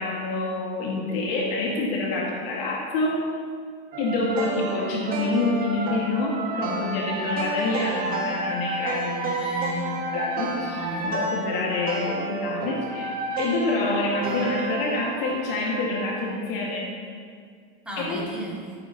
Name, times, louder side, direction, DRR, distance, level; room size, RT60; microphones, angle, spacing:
voice 1, 0.0-3.2 4.0-9.4 10.1-16.9 18.0-18.2, left 3 dB, 70° left, -2 dB, 1.9 m, -27 dB
sound 1, 3.9-16.3, right 3 dB, 30° right, 1.4 m, -30 dB
voice 2, 9.3-10.1 10.7-11.2 17.9-18.7, right 1 dB, 5° right, -5 dB, 2.2 m, -35 dB
13.0 x 8.9 x 2.9 m, 2.1 s
supercardioid pair, 135°, 31 cm